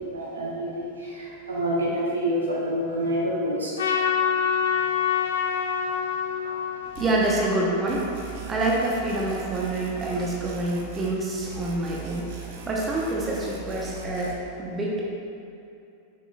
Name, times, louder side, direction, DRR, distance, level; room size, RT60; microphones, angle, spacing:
voice 1, 0.0-3.7, equal, 75° right, -5 dB, 1.3 m, -27 dB
Trumpet, 3.8-8.2, left 7 dB, 65° left, 0.5 m, -26 dB
voice 2, 6.8-8.0 8.4-15.0, right 2 dB, 20° right, -4 dB, 1.0 m, -27 dB
sound 1, 7.0-7.5 7.9-11.2 11.4-14.3, right 5 dB, 50° right, 0.8 m, -40 dB
7.3 x 6.0 x 2.4 m, 2.7 s
figure-of-eight pair, 90°, 0 cm